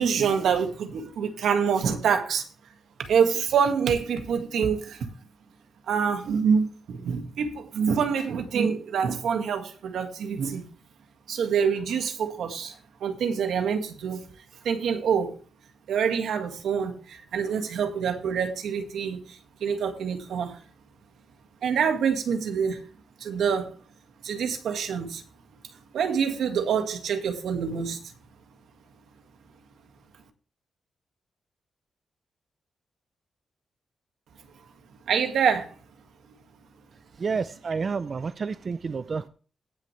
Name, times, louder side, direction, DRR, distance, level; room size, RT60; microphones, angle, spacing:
voice 1, 0.0-2.4 3.0-5.1 5.9-10.6 11.3-12.8 13.0-14.2 14.6-15.3 15.9-20.6 21.6-22.8 23.2-23.7 24.2-25.2 25.9-28.0 35.1-35.7, right 6 dB, 90° right, 1.9 m, -26 dB
voice 2, 37.2-39.3, right 5 dB, 40° right, 0.5 m, -30 dB
17.5 x 6.6 x 3.3 m
wide cardioid pair, 135°, 0 cm